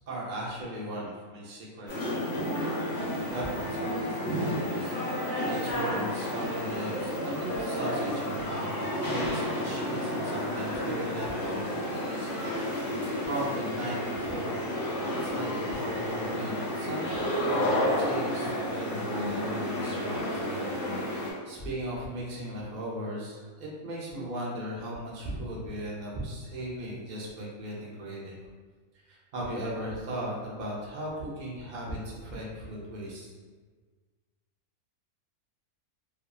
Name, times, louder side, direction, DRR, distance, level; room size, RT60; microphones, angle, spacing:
voice 1, 0.1-1.9 3.3-5.0 5.4-12.7 13.2-14.6 15.1-28.4 29.1-33.3, right 1 dB, 55° right, -5 dB, 0.5 m, -37 dB
sound 1, 1.9-21.3, left 1 dB, 55° left, 1.0 m, -31 dB
2.6 x 2.6 x 2.2 m, 1.4 s
omnidirectional pair, 1.5 m